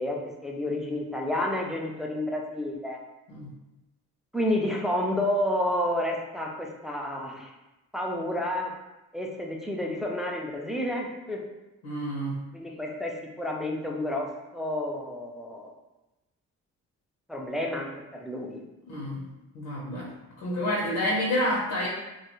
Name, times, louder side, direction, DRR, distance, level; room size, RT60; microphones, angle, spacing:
voice 1, 0.0-3.0 4.3-7.5 7.9-8.7 9.1-11.4 12.5-15.7 17.3-18.6, left 1 dB, ahead, -1 dB, 0.3 m, -30 dB
voice 2, 11.8-12.4 18.9-19.3 19.5-20.1 20.4-21.9, left 1 dB, 90° left, -5 dB, 0.7 m, -28 dB
2.3 x 2.3 x 2.9 m, 1.0 s
cardioid pair, 90°, 30 cm